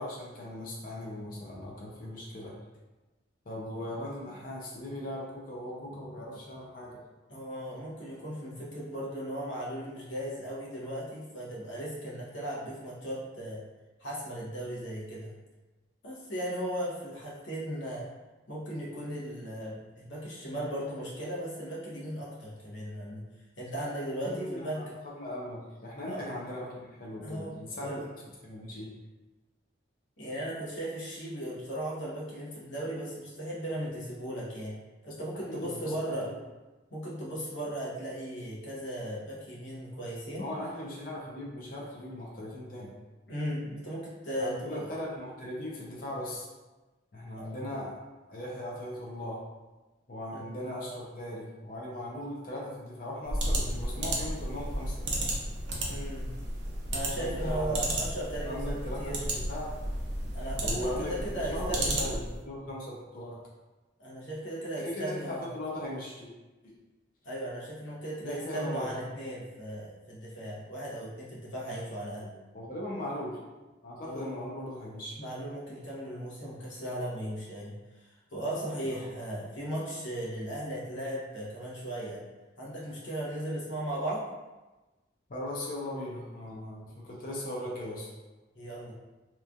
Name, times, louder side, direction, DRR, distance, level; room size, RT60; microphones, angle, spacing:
voice 1, 0.0-2.5 3.5-7.0 24.2-24.9 25.1-28.0 28.4-28.9 35.5-35.9 36.2-36.3 40.4-42.9 44.4-46.5 47.1-48.0 48.3-49.4 50.1-55.1 57.2-57.8 58.4-59.2 59.5-59.7 60.6-61.2 61.5-63.4 64.8-66.3 66.6-66.7 68.2-68.9 72.5-73.3 73.8-75.2 78.9-79.1 85.3-88.1, left 1 dB, 50° left, -4 dB, 0.6 m, -38 dB
voice 2, 7.3-13.6 14.0-15.3 16.0-18.1 18.5-23.2 23.6-25.0 26.0-26.2 27.2-28.0 30.2-34.8 35.0-36.3 36.9-40.5 43.3-44.9 47.4-47.5 50.3-50.4 55.9-56.3 56.9-59.2 60.3-62.2 64.0-65.4 67.2-72.3 74.0-74.3 75.2-77.7 78.1-82.2 82.6-84.2 88.5-88.9, right 1 dB, 80° left, -6 dB, 0.8 m, -37 dB
sound 1, 53.2-62.4, right 1 dB, 65° right, 0.5 m, -33 dB
2.9 x 2.3 x 2.4 m, 1.1 s
head